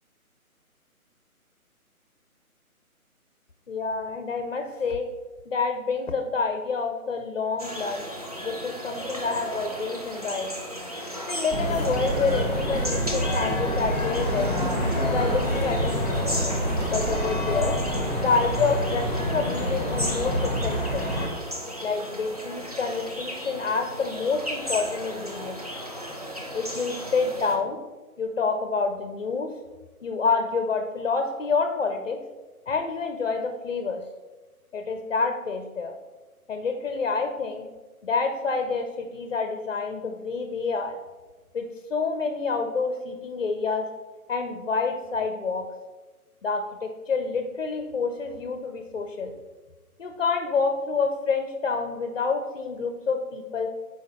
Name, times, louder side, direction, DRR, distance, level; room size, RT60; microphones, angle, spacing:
voice 1, 3.7-5.1 5.5-8.1 8.4-10.5 11.3-14.5 15.1-16.5 16.9-17.8 18.2-21.1 21.8-25.6 26.5-27.8 28.2-29.6 30.0-32.2 32.7-34.0 34.7-35.9 36.5-37.7 38.0-41.0 41.5-43.9 44.3-45.7 46.4-49.3 50.0-53.7, left 4 dB, 45° left, 6 dB, 0.6 m, -28 dB
sound 1, 7.6-27.6, equal, 25° right, 0.5 m, -35 dB
sound 2, 11.5-21.3, equal, 5° left, 1.2 m, -27 dB
6.1 x 4.7 x 4.1 m, 1.2 s
figure-of-eight pair, 155°, 44 cm